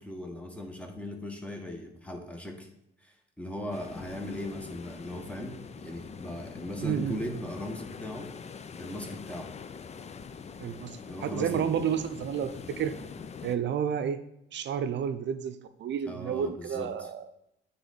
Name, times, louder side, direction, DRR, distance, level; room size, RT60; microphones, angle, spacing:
voice 1, 0.0-2.7 3.0-8.3 8.8-9.5 11.0-11.8 16.1-17.1, left 1 dB, 5° left, 3 dB, 1.3 m, -39 dB
sound 1, 3.7-13.6, left 6 dB, 35° left, 0.5 m, -43 dB
voice 2, 6.8-7.3 10.6-13.0 13.4-14.2 14.5-17.3, right 8 dB, 65° right, 11 dB, 0.6 m, -31 dB
9.0 x 3.7 x 4.1 m, 0.81 s
cardioid pair, 90°, 20 cm